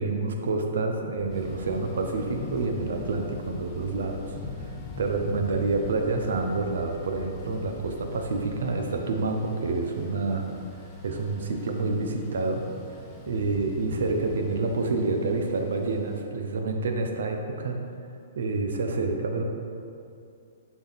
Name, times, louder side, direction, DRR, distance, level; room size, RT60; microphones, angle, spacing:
voice 1, 0.0-4.4 5.0-10.5 11.0-12.7 13.3-17.8 18.4-19.4, right 3 dB, 80° right, 4 dB, 0.7 m, -28 dB
sound 1, 1.2-8.8, left 6 dB, 45° left, 0.5 m, -45 dB
Thunder / Rain, 1.3-16.2, left 2 dB, 10° left, 0.9 m, -43 dB
6.1 x 4.0 x 4.0 m, 2.5 s
hypercardioid pair, 155°, 0 cm